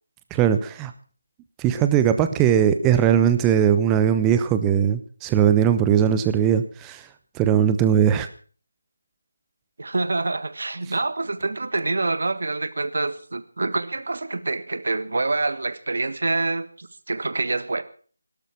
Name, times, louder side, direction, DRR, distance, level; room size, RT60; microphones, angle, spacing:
voice 1, 0.3-0.9 1.6-7.0 7.4-8.3, right 9 dB, 10° right, 11 dB, 0.9 m, -19 dB
voice 2, 9.8-17.8, right 3 dB, 60° right, 13 dB, 1.6 m, -26 dB
18.0 x 12.0 x 6.0 m, 0.43 s
figure-of-eight pair, 160°, 0 cm